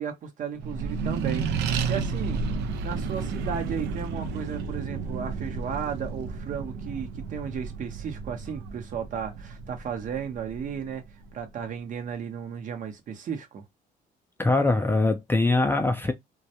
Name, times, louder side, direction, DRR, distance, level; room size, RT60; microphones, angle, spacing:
voice 1, 0.0-2.4 2.8-11.0 11.3-13.6, right 7 dB, 50° right, 0.8 m, -34 dB
Accelerating revving vroom, 0.6-11.5, right 5 dB, 85° right, 0.5 m, -32 dB
voice 2, 14.4-16.1, left 2 dB, 15° left, 0.3 m, -22 dB
2.2 x 2.1 x 2.8 m
cardioid pair, 110°, 17 cm